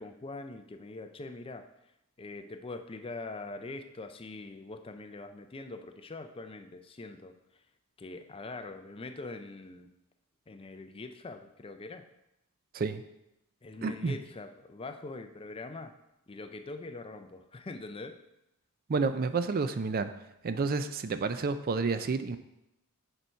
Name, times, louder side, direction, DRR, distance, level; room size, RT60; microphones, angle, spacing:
voice 1, 0.0-1.7 2.2-7.3 8.0-9.9 10.5-12.0 13.6-15.9 16.3-18.2, left 3 dB, 25° left, 8 dB, 0.4 m, -43 dB
voice 2, 13.8-14.1 18.9-20.1 20.4-22.4, right 4 dB, 40° right, 11 dB, 0.4 m, -30 dB
6.7 x 4.5 x 5.5 m, 0.86 s
head